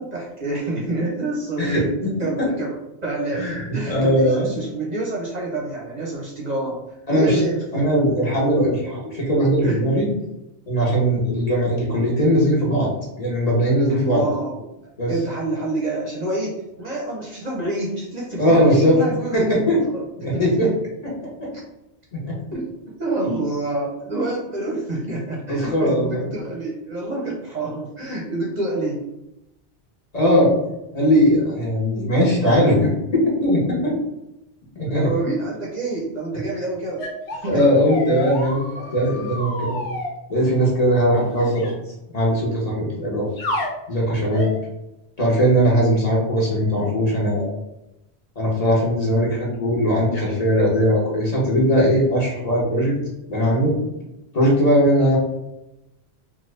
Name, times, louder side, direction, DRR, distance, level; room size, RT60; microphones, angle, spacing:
voice 1, 0.0-1.9 2.2-3.5 3.7-6.8 7.1-7.8 9.6-9.8 13.9-14.6 15.1-20.0 20.3-20.7 21.5-21.6 22.5-29.0 34.8-37.0 37.3-37.6 55.0-55.1, right 2 dB, 50° right, -3 dB, 0.6 m, -27 dB
voice 2, 1.6-2.1 2.4-2.5 3.3-4.5 7.1-7.4 7.7-10.1 10.7-12.9 13.2-14.3 15.0-15.1 18.4-19.0 19.3-19.8 20.2-20.7 21.0-21.1 21.4-21.5 22.1-22.4 25.5-26.2 30.1-30.5 30.9-33.9 34.8-35.1 37.5-39.8 40.3-41.7 42.1-43.6 43.9-44.5 45.2-47.5 48.4-52.9 53.3-53.7 54.3-55.2, equal, 40° left, -4 dB, 0.9 m, -19 dB
sound 1, 37.0-40.1 41.4-41.7 43.4-43.7 44.3-44.6, left 1 dB, 85° left, 0.9 m, -29 dB
2.9 x 2.3 x 3.1 m, 0.90 s
omnidirectional pair, 1.1 m